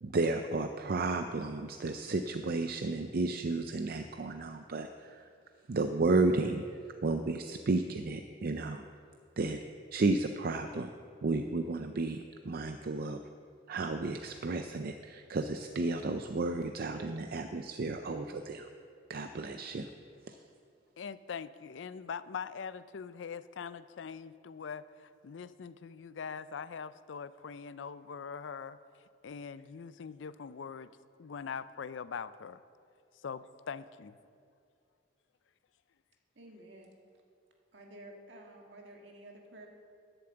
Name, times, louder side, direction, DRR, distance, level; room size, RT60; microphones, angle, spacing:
voice 1, 0.0-5.2 5.7-6.6 7.0-8.8 9.4-9.6 9.9-10.9 11.2-13.2 13.7-18.7 19.1-19.9 20.3-20.4, right 3 dB, 55° right, 7 dB, 0.5 m, -32 dB
voice 2, 21.0-28.8 29.2-30.9 31.2-32.6 33.2-34.2, left 6 dB, 80° left, 15 dB, 0.4 m, -42 dB
voice 3, 36.4-36.9 37.7-39.7, right 1 dB, 70° right, 1 dB, 1.7 m, -51 dB
11.0 x 7.1 x 7.8 m, 2.3 s
head